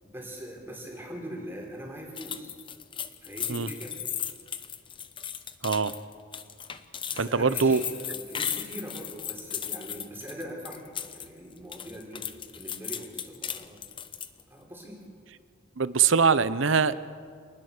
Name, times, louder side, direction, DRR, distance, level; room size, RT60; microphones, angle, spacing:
voice 1, 0.0-2.5 3.2-4.0 7.1-13.9 14.5-15.1, equal, 10° right, -1 dB, 4.2 m, -42 dB
sound 1, 2.2-11.3 11.6-14.4, left 8 dB, 25° left, 0.9 m, -36 dB
voice 2, 7.2-7.8 15.8-17.0, right 5 dB, 85° right, 15 dB, 0.9 m, -23 dB
27.0 x 20.0 x 6.8 m, 2.1 s
head